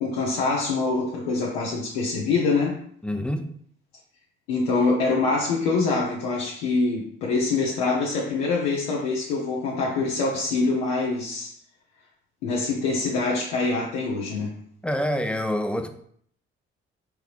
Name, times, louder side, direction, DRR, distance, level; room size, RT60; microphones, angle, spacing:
voice 1, 0.0-2.8 4.5-11.5 12.4-14.5, left 3 dB, 80° left, 0.6 m, -25 dB
voice 2, 3.0-3.5 14.8-15.9, equal, 5° left, 0.5 m, -26 dB
3.8 x 3.3 x 3.2 m
hypercardioid pair, 45°, 31 cm